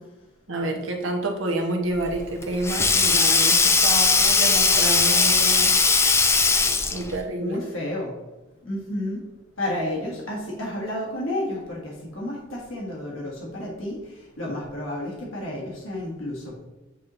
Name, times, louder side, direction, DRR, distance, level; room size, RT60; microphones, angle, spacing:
voice 1, 0.5-5.8 6.9-7.6, right 2 dB, 70° right, 2 dB, 1.1 m, -29 dB
Sink (filling or washing), 2.0-7.2, left 4 dB, 15° left, 0.4 m, -19 dB
voice 2, 7.4-8.1 8.6-9.2 9.6-16.6, left 1 dB, 80° left, -4 dB, 1.5 m, -31 dB
8.4 x 3.0 x 3.9 m, 1.1 s
head